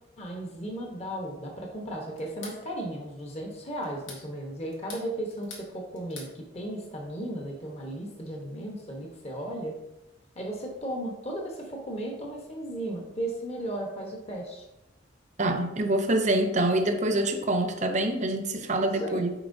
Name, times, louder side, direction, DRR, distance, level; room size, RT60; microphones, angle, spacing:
voice 1, 0.2-9.7 10.3-14.6 18.8-19.3, right 1 dB, 35° left, 0 dB, 1.1 m, -35 dB
sound 1, 2.2-2.6 3.8-4.3 4.7-5.7 5.9-6.3, left 4 dB, 90° left, 1.8 m, -44 dB
voice 2, 15.4-19.3, right 1 dB, 40° right, 6 dB, 0.7 m, -26 dB
10.0 x 4.4 x 2.7 m, 0.94 s
head